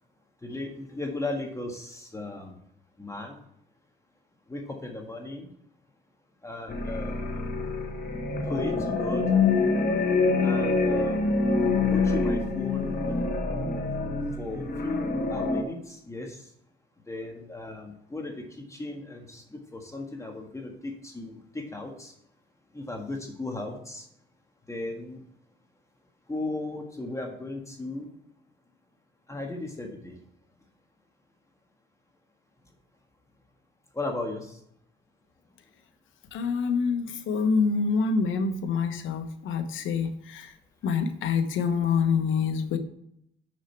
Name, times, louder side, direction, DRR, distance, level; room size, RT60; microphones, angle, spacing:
voice 1, 0.4-2.6 3.0-3.4 4.5-5.5 6.4-7.5 8.4-9.4 10.4-11.4 11.9-13.2 14.4-16.5 17.1-22.1 22.7-24.1 24.7-25.2 26.3-28.1 29.3-30.2 33.9-34.6, left 2 dB, 15° left, 2 dB, 1.5 m, -36 dB
sound 1, 6.7-15.6, left 3 dB, 50° left, 1.5 m, -26 dB
voice 2, 36.3-40.5 40.8-42.8, left 5 dB, 80° left, 8 dB, 1.1 m, -26 dB
6.4 x 6.3 x 4.5 m, 0.73 s
cardioid pair, 90°, 20 cm